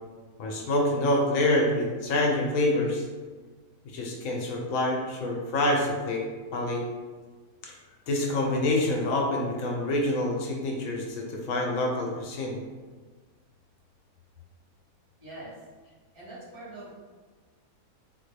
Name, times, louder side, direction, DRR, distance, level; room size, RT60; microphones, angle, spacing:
voice 1, 0.4-3.1 3.9-6.2 6.5-6.8 7.6-7.8 8.1-12.6, left 1 dB, 70° left, 0 dB, 0.9 m, -26 dB
voice 2, 15.2-15.5 16.1-16.9, right 2 dB, 75° right, -10 dB, 2.1 m, -43 dB
3.7 x 2.1 x 3.2 m, 1.4 s
omnidirectional pair, 1.6 m